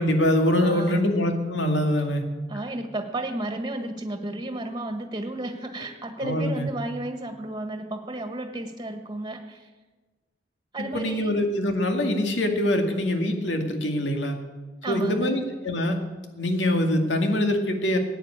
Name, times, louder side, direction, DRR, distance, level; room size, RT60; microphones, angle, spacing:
voice 1, 0.0-2.2 6.2-6.7 10.9-14.4 14.9-16.0 16.4-18.0, left 1 dB, 90° left, 5 dB, 2.2 m, -24 dB
voice 2, 0.6-1.0 2.5-9.7 10.7-11.3 14.8-15.3, right 1 dB, 25° right, 6 dB, 1.5 m, -33 dB
16.0 x 9.2 x 8.8 m, 1.3 s
head